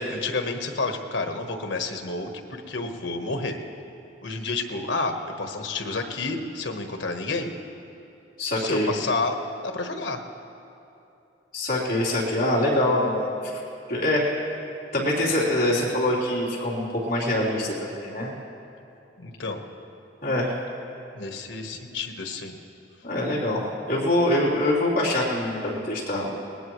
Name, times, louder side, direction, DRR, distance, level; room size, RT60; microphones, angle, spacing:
voice 1, 0.1-3.6 4.2-7.5 8.5-10.2 19.2-19.6 21.1-22.6, left 3 dB, 90° left, 4 dB, 1.3 m, -30 dB
voice 2, 8.4-8.9 11.5-13.4 13.9-14.2 14.9-18.3 20.2-20.6 23.0-26.4, left 1 dB, 50° left, -6 dB, 3.5 m, -24 dB
20.0 x 19.5 x 3.2 m, 2.8 s
head